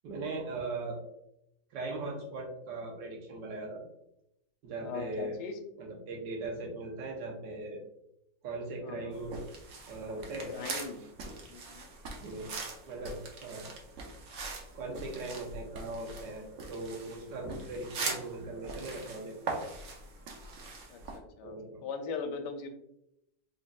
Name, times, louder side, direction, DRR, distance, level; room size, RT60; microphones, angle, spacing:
voice 1, 0.0-1.0 1.7-3.8 4.6-5.4 5.8-7.8 8.4-9.4 9.9-10.5 11.0-11.1 12.2-12.5 12.9-13.7 14.7-19.6 21.4-21.8, right 2 dB, 80° right, 1 dB, 1.5 m, -39 dB
voice 2, 4.8-5.6 8.8-9.2 10.3-11.0 11.5-11.9 20.9-22.7, left 5 dB, 75° left, 6 dB, 1.2 m, -40 dB
sound 1, 9.1-21.2, right 3 dB, 60° right, 0.9 m, -42 dB
3.9 x 3.7 x 2.3 m, 0.81 s
omnidirectional pair, 1.9 m